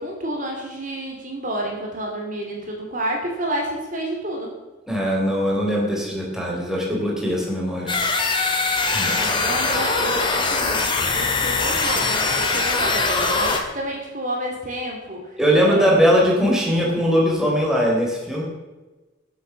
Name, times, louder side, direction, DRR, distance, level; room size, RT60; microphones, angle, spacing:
voice 1, 0.0-4.5 8.9-10.8 11.1-15.3 15.6-16.0, right 1 dB, 45° right, 1 dB, 3.1 m, -29 dB
voice 2, 4.9-8.0 8.9-9.3 15.4-18.4, equal, 5° right, -3 dB, 3.9 m, -20 dB
sound 1, 7.9-13.6, left 3 dB, 25° left, 2.0 m, -22 dB
18.5 x 8.3 x 7.3 m, 1.2 s
head